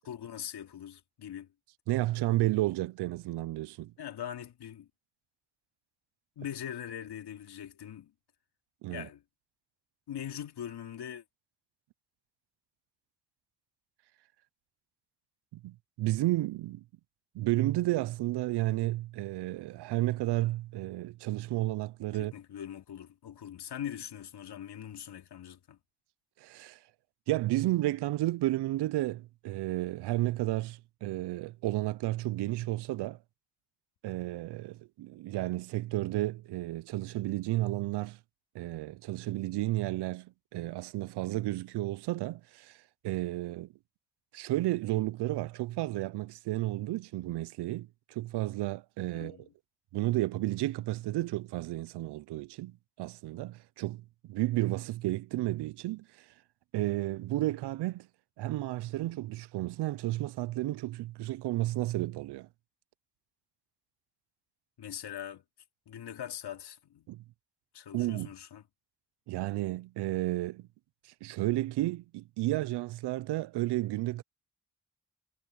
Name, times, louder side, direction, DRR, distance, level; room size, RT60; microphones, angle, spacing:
voice 1, 0.0-1.5 4.0-4.9 6.4-8.1 8.9-9.2 10.1-11.2 22.1-25.8 49.1-49.5 64.8-65.4 65.9-67.1 67.7-68.6, left 9 dB, 80° left, 2.6 m, -42 dB
voice 2, 1.9-3.9 8.8-9.1 15.6-16.8 17.3-22.3 26.4-26.8 27.3-33.2 34.0-38.2 38.5-42.8 43.0-43.7 44.3-49.4 49.9-56.1 56.7-58.1 58.4-62.5 67.1-67.2 67.9-68.3 69.3-70.7 71.2-74.2, right 17 dB, 85° right, 0.6 m, -32 dB
supercardioid pair, 45°, 39 cm